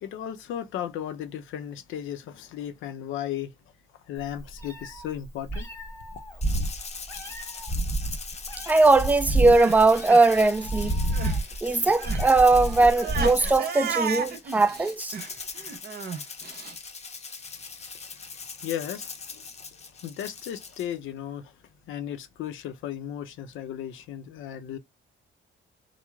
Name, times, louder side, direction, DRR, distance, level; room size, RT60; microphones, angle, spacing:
voice 1, 0.0-3.5 4.1-5.7 17.9-19.4 19.7-21.5 21.9-24.8, left 10 dB, 80° left, 0.5 m, -35 dB
Meow, 4.2-13.6, right 1 dB, 15° left, 1.1 m, -30 dB
Rattle (instrument), 6.4-20.9, left 5 dB, 35° left, 0.7 m, -41 dB
voice 2, 8.7-10.9 11.6-15.1, right 3 dB, 10° right, 0.3 m, -20 dB
Crying sobbing, 9.3-11.4 11.7-16.7, right 5 dB, 55° right, 0.7 m, -34 dB
3.0 x 2.0 x 2.2 m
cardioid pair, 90°, 20 cm